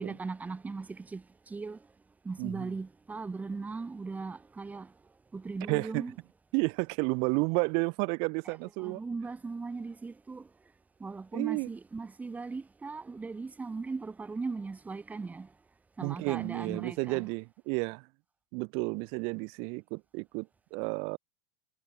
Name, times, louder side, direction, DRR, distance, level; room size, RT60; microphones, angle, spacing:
voice 1, 0.0-1.8 2.2-4.9 5.3-6.1 8.4-10.4 11.0-15.5 16.0-17.3, right 4 dB, 15° right, 2.9 m, -38 dB
voice 2, 2.4-2.7 5.7-6.0 6.5-9.0 11.3-11.7 16.0-18.1 18.5-21.2, right 33 dB, 60° right, 5.0 m, -31 dB
hypercardioid pair, 105°, 10 cm